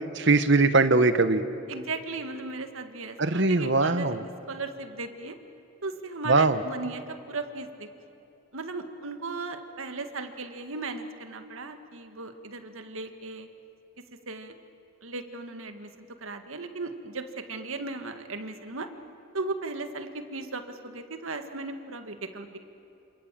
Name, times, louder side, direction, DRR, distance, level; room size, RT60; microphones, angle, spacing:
voice 1, 0.2-1.4 3.2-4.2 6.3-6.6, right 3 dB, 55° right, 11 dB, 1.1 m, -21 dB
voice 2, 1.7-5.4 5.8-7.9 8.5-13.5 14.3-14.5 15.0-18.9 19.3-22.6, right 3 dB, 70° right, 7 dB, 1.8 m, -37 dB
27.5 x 27.0 x 7.6 m, 2.8 s
head